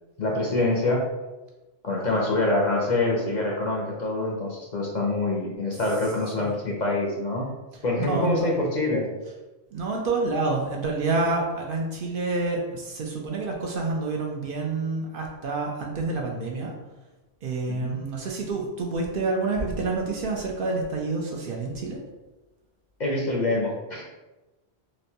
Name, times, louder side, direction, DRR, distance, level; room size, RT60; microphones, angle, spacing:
voice 1, 0.2-1.0 1.8-7.5 7.8-9.1 17.7-18.0 23.0-24.0, left 2 dB, 50° left, -2 dB, 0.6 m, -25 dB
voice 2, 8.0-8.6 9.7-16.7 17.4-22.0, right 3 dB, 60° right, 0 dB, 0.7 m, -28 dB
4.0 x 2.2 x 2.7 m, 1.1 s
omnidirectional pair, 1.1 m